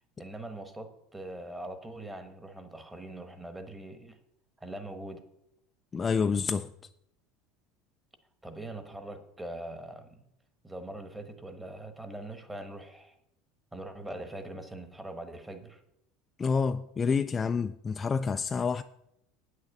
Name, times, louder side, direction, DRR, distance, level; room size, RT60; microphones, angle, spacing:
voice 1, 0.2-4.2 4.6-5.3 8.4-10.3 10.6-13.2 13.7-15.8, right 1 dB, 10° right, 1.2 m, -42 dB
voice 2, 5.9-6.7 16.4-18.8, left 5 dB, 20° left, 0.3 m, -28 dB
9.1 x 6.4 x 7.1 m
supercardioid pair, 130°, 0 cm